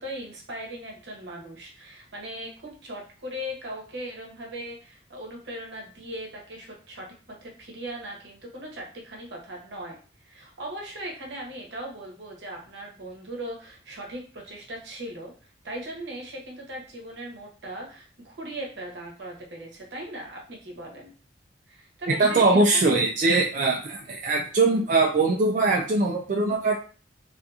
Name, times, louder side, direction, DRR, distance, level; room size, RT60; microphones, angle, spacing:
voice 1, 0.0-7.1 7.4-21.1 21.7-23.0, right 1 dB, 80° right, -1 dB, 0.9 m, -38 dB
voice 2, 22.2-26.7, right 3 dB, 45° right, 0 dB, 0.3 m, -21 dB
2.7 x 2.5 x 2.3 m, 0.39 s
head